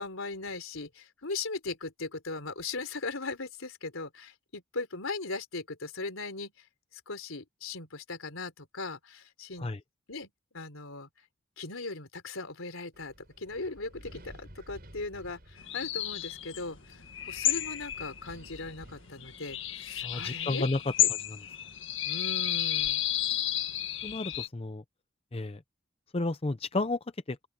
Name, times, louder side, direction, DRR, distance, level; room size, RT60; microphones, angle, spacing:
voice 1, 0.0-6.5 6.9-9.7 10.1-11.1 11.6-20.7 21.0-21.1 22.1-23.0, left 3 dB, 80° left, 3.5 m, -39 dB
Wind, 12.9-20.3, equal, 45° right, 6.1 m, -53 dB
sound 1, 15.6-24.5, left 12 dB, 65° left, 1.8 m, -32 dB
voice 2, 20.0-20.8 24.0-24.8 25.3-25.6 26.1-27.0 27.3-27.4, left 2 dB, 30° left, 0.6 m, -31 dB
open air
head